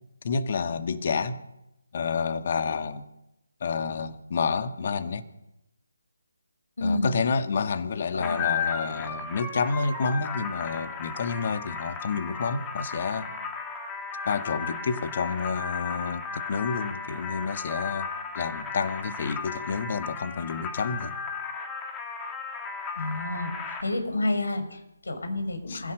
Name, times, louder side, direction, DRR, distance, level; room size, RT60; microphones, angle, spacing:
voice 1, 0.2-1.4 1.9-3.1 3.6-5.2 6.8-13.3 14.3-18.1 18.3-21.2 25.7-25.8, left 5 dB, 40° left, 9 dB, 2.0 m, -29 dB
voice 2, 6.8-7.2 8.1-8.6 23.0-23.5 23.8-25.9, left 2 dB, 70° left, 7 dB, 6.2 m, -29 dB
sound 1, 8.2-23.8, left 5 dB, 10° left, 2.5 m, -35 dB
26.0 x 16.5 x 6.8 m, 0.89 s
figure-of-eight pair, 155°, 0 cm